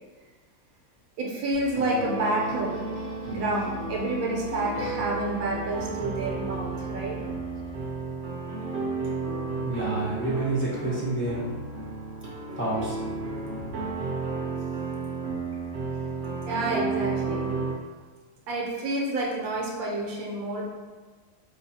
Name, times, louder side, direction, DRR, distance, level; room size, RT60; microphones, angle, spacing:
voice 1, 1.2-2.8 3.2-7.3 16.5-17.5 18.5-20.7, right 2 dB, 80° right, -3 dB, 1.1 m, -29 dB
sound 1, 1.5-8.1, left 5 dB, 85° left, 1.1 m, -42 dB
sound 2, 1.7-17.7, right 3 dB, 60° right, 0.8 m, -33 dB
voice 2, 9.7-11.4 12.6-13.0, right 2 dB, 20° left, -8 dB, 0.3 m, -28 dB
4.0 x 2.3 x 2.7 m, 1.4 s
omnidirectional pair, 1.5 m